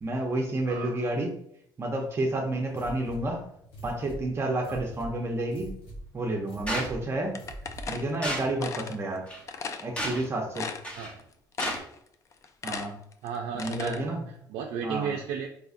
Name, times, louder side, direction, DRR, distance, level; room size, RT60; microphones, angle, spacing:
voice 1, 0.0-1.3 1.8-3.4 3.8-5.7 6.1-7.4 7.9-9.2 9.8-10.7 12.6-13.0 13.6-14.2 14.8-15.1, right 2 dB, 35° right, 1 dB, 0.6 m, -30 dB
voice 2, 0.7-1.0 4.7-4.8 11.0-11.2 13.2-14.1 14.5-15.5, right 7 dB, 90° right, 1 dB, 0.3 m, -34 dB
sound 1, 2.7-8.1, right 1 dB, 85° left, 0.9 m, -44 dB
sound 2, 6.7-6.9 8.2-8.5 9.3-9.4 10.0-10.3 10.8-11.1 11.6-11.8, right 1 dB, 15° left, 0.9 m, -32 dB
sound 3, 7.3-9.0 9.5-9.9 10.2-10.3 10.5-11.2 11.5-12.0 12.3-14.0, left 5 dB, 40° left, 0.3 m, -36 dB
3.7 x 2.8 x 2.5 m, 0.71 s
cardioid pair, 100°, 8 cm